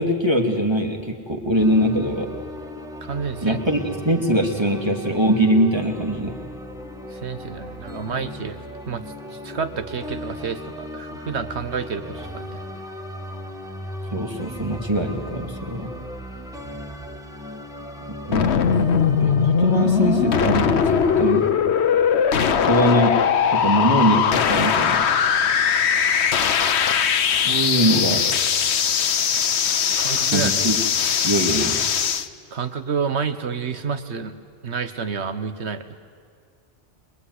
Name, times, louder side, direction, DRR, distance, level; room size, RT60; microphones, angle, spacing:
voice 1, 0.0-2.3 3.4-6.3 14.1-15.9 18.3-18.5 19.2-21.5 22.5-23.1 23.5-25.0 27.3-28.2 30.3-30.8 31.2-31.8, right 1 dB, 25° right, 2 dB, 2.6 m, -22 dB
sound 1, 1.5-21.5, equal, 5° right, 2.0 m, -37 dB
voice 2, 3.0-3.6 7.1-8.6 8.9-9.0 9.4-12.6 30.0-30.6 32.5-34.3 34.6-36.0, right 6 dB, 80° right, 10 dB, 1.6 m, -29 dB
sound 2, 18.3-32.3, left 7 dB, 75° left, 1.2 m, -20 dB
28.0 x 21.5 x 9.7 m, 2.2 s
omnidirectional pair, 1.1 m